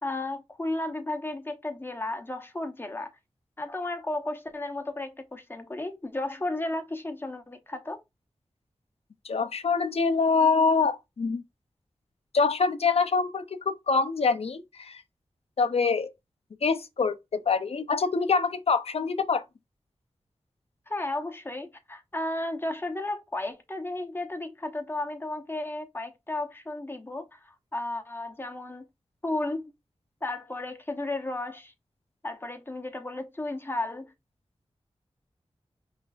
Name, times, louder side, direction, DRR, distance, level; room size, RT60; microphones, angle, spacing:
voice 1, 0.0-3.1 3.6-8.0 20.9-28.9 29.2-29.6 30.2-31.7 32.2-34.1, left 2 dB, 20° left, 0.9 m, -33 dB
voice 2, 9.2-11.4 12.3-15.0 15.6-16.1 16.6-19.4, left 4 dB, 65° left, 0.5 m, -25 dB
5.5 x 3.3 x 2.4 m
wide cardioid pair, 90°, 11 cm